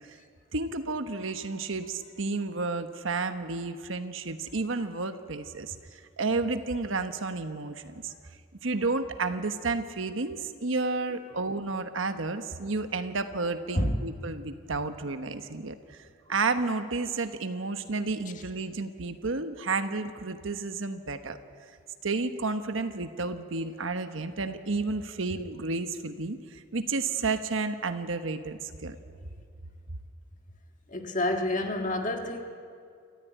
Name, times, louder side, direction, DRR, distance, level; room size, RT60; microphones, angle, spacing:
voice 1, 0.5-5.8 6.2-8.1 8.6-15.8 16.3-21.4 22.0-26.4 26.7-29.0, right 3 dB, 75° right, 9 dB, 1.1 m, -31 dB
voice 2, 30.9-32.4, left 1 dB, 40° left, 3 dB, 1.7 m, -28 dB
28.5 x 14.0 x 9.2 m, 2.3 s
head